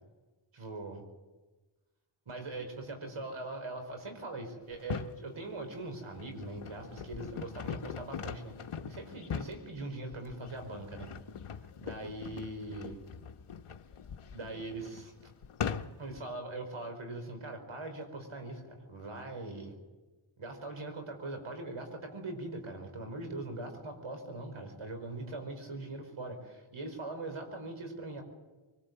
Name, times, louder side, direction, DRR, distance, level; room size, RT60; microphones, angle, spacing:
voice 1, 0.5-1.0 2.3-11.1 11.8-13.0 14.3-15.1 16.0-19.7 20.4-28.2, right 2 dB, 75° right, 5 dB, 5.3 m, -41 dB
sound 1, 4.7-5.2 5.9-16.2, left 7 dB, 85° left, 1.1 m, -41 dB
24.5 x 21.0 x 8.0 m, 1.2 s
cardioid pair, 50°, 50 cm